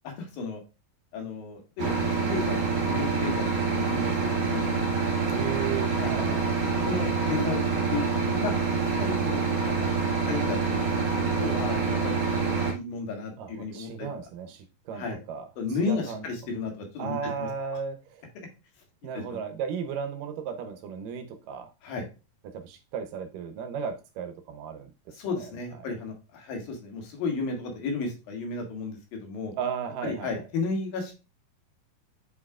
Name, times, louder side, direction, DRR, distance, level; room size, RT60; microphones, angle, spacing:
voice 1, 0.0-0.6 1.1-2.6 2.9-5.4 6.0-6.4 6.8-7.6 7.9-9.9 10.3-10.8 11.2-12.2 12.5-14.1 14.9-15.2 15.6-17.5 19.1-19.4 21.8-22.0 25.1-29.5 30.0-31.3, left 4 dB, 80° left, 2 dB, 3.4 m, -34 dB
sound 1, 1.8-12.7, right 4 dB, 40° right, 1.7 m, -26 dB
voice 2, 5.3-6.4 10.2-10.4 13.4-15.5 15.8-16.3 17.0-18.3 19.0-21.7 22.4-24.9 25.3-25.5 29.6-30.3, right 7 dB, 75° right, 8 dB, 2.3 m, -35 dB
8.7 x 4.8 x 2.3 m, 0.29 s
omnidirectional pair, 4.1 m